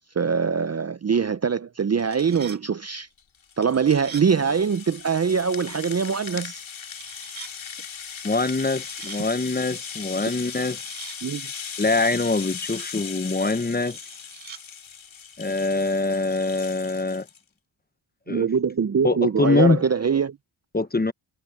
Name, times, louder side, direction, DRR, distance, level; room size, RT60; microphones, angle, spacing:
voice 1, 0.2-3.1 3.6-6.6 11.2-11.5 18.3-20.4, right 6 dB, 35° right, 0.5 m, -23 dB
sound 1, 1.8-2.6 3.6-4.3 6.9-7.5 8.5-9.2 10.2-11.2 12.0-12.9 13.7-14.6, right 7 dB, 70° right, 6.2 m, -44 dB
Rattle (instrument), 3.2-17.4, left 7 dB, 70° left, 2.2 m, -38 dB
voice 2, 8.2-10.8 11.8-14.0 15.4-17.3 18.3-18.5 19.0-19.8 20.7-21.1, left 3 dB, 20° left, 0.8 m, -24 dB
wide cardioid pair, 100°, 49 cm